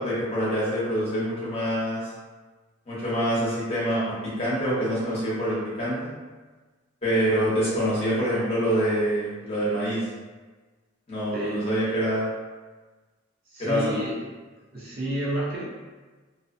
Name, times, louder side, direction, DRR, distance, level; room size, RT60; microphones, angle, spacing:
voice 1, 0.0-2.0 2.9-4.0 4.4-6.1 7.0-10.1 11.1-12.3 13.6-13.9, equal, 30° left, -9 dB, 0.9 m, -25 dB
voice 2, 13.5-14.3 14.7-15.6, right 1 dB, 45° right, -7 dB, 0.7 m, -30 dB
2.7 x 2.2 x 2.5 m, 1.3 s
head